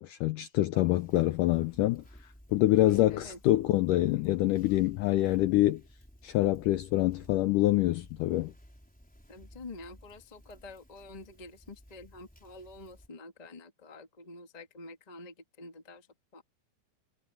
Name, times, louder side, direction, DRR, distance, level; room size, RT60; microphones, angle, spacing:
voice 1, 0.0-2.0 2.5-5.8 6.2-8.5, left 16 dB, 80° left, 1.9 m, -26 dB
Conversation, 0.7-13.1, equal, ahead, 4.5 m, -56 dB
voice 2, 3.1-3.4 9.3-16.1 16.3-16.4, left 2 dB, 30° left, 0.7 m, -48 dB
omnidirectional pair, 4.4 m